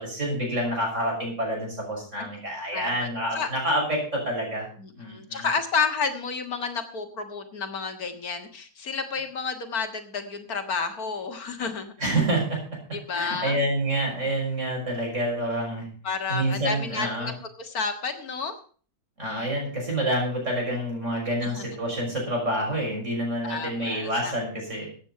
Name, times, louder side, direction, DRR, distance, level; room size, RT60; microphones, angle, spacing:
voice 1, 0.0-4.7 5.0-5.5 12.0-12.6 13.1-15.9 16.3-17.3 19.2-24.9, right 1 dB, 55° right, -1 dB, 6.6 m, -28 dB
voice 2, 2.7-3.5 4.8-11.9 12.9-13.6 16.0-17.3 17.6-18.6 21.4-21.8 22.1-22.2 23.4-24.4, left 5 dB, 80° left, 6 dB, 2.2 m, -31 dB
14.0 x 9.1 x 5.7 m, 0.43 s
omnidirectional pair, 1.5 m